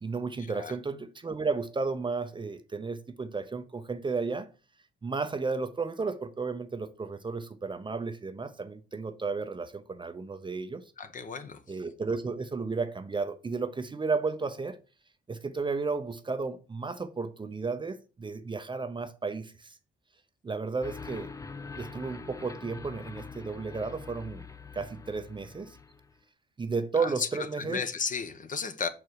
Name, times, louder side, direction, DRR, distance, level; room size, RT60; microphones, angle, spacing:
voice 1, 0.0-4.5 5.0-10.8 11.7-14.8 15.3-19.8 20.4-21.3 21.8-24.5 24.7-25.8 26.6-27.8, right 4 dB, 25° right, 0.7 m, -33 dB
voice 2, 11.0-11.6 27.0-27.3 27.6-28.9, left 5 dB, 40° left, 1.0 m, -33 dB
sound 1, 20.8-26.2, left 4 dB, 15° left, 0.6 m, -44 dB
5.9 x 4.7 x 4.7 m
cardioid pair, 90°, 20 cm